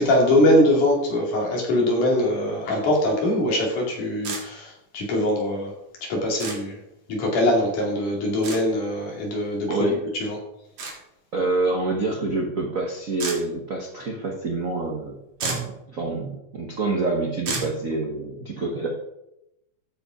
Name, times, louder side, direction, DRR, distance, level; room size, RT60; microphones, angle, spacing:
voice 1, 0.0-5.7 6.0-6.8 7.1-9.9 10.2-10.4, left 1 dB, 85° left, -1 dB, 4.0 m, -22 dB
sound 1, 4.2-4.4 6.4-6.6 8.4-8.6 10.8-11.0 13.2-13.4 15.0-15.1 15.4-15.7 17.5-17.7, right 4 dB, 60° right, 3.2 m, -29 dB
voice 2, 9.7-10.0 11.3-15.2 15.4-18.9, right 2 dB, 85° right, 1 dB, 0.7 m, -27 dB
13.5 x 5.3 x 5.0 m, 0.85 s
omnidirectional pair, 3.5 m